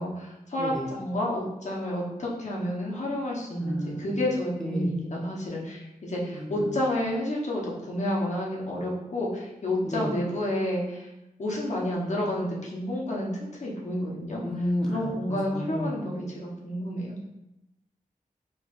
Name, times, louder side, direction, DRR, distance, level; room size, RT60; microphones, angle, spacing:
voice 1, 0.0-11.1 11.4-14.4 14.9-17.2, left 1 dB, 55° left, -3 dB, 0.9 m, -30 dB
voice 2, 0.6-0.9 3.6-4.1 4.6-4.9 6.3-6.8 9.9-10.1 14.4-16.0, equal, 5° left, -2 dB, 0.6 m, -32 dB
4.1 x 3.1 x 2.4 m, 0.92 s
wide cardioid pair, 90°, 14 cm